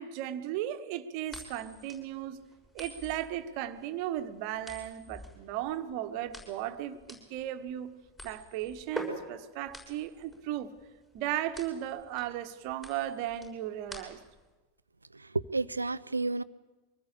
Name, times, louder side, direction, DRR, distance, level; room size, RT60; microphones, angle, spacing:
voice 1, 0.0-2.4 2.7-7.9 8.2-10.7 11.1-14.2, right 12 dB, 45° right, 9 dB, 1.4 m, -36 dB
sound 1, 1.3-14.5, equal, 10° left, 6.5 m, -46 dB
voice 2, 15.1-16.4, right 3 dB, 80° right, 16 dB, 0.7 m, -31 dB
24.0 x 19.0 x 8.5 m, 1.2 s
figure-of-eight pair, 90°, 0 cm